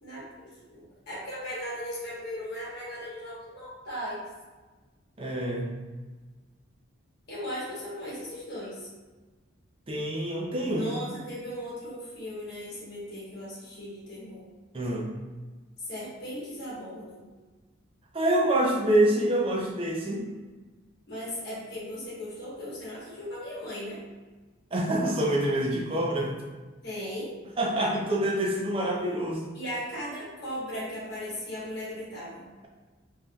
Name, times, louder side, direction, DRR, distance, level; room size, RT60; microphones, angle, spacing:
voice 1, 0.0-4.2 7.3-8.9 10.7-14.5 15.8-17.2 21.1-24.0 26.8-27.3 29.5-32.5, equal, 50° left, -7 dB, 1.2 m, -37 dB
voice 2, 5.2-5.7 9.9-10.9 14.7-15.1 18.1-20.2 24.7-26.3 27.6-29.4, right 1 dB, 25° right, -1 dB, 0.4 m, -26 dB
3.4 x 2.6 x 2.3 m, 1.3 s
head